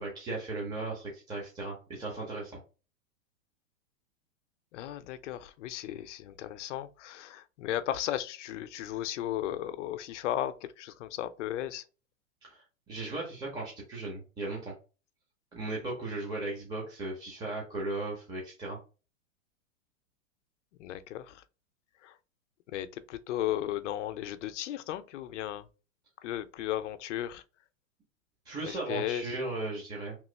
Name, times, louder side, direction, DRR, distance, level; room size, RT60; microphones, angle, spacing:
voice 1, 0.0-2.6 12.4-14.7 15.5-18.8 28.5-30.2, right 2 dB, 10° right, 0.6 m, -37 dB
voice 2, 4.7-11.8 20.8-21.4 22.0-22.1 22.7-25.6 26.2-27.4 28.6-29.3, left 12 dB, 65° left, 0.5 m, -35 dB
3.0 x 2.3 x 3.2 m
hypercardioid pair, 135°, 40 cm